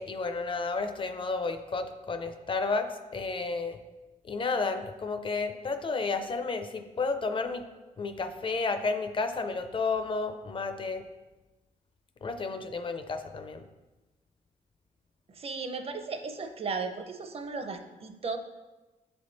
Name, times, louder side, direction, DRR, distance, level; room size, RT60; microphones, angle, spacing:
voice 1, 0.0-3.8 4.2-7.6 8.0-11.0 12.2-13.7, left 4 dB, 40° left, 8 dB, 0.5 m, -32 dB
voice 2, 15.3-18.4, right 4 dB, 45° right, 6 dB, 0.6 m, -35 dB
7.1 x 3.4 x 4.0 m, 1.1 s
cardioid pair, 105°, 14 cm